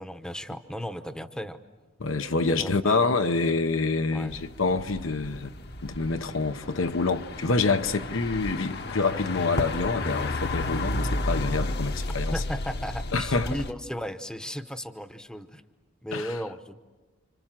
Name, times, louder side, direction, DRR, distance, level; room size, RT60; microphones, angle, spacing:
voice 1, 0.0-1.6 2.5-3.1 4.1-4.4 12.3-15.6 16.0-16.7, equal, 5° left, 0.9 m, -35 dB
voice 2, 2.0-5.5 5.8-12.3 13.1-13.5 16.1-16.3, left 3 dB, 70° left, 0.9 m, -27 dB
sound 1, 4.3-13.7, left 2 dB, 50° left, 1.2 m, -32 dB
29.5 x 26.0 x 7.6 m
head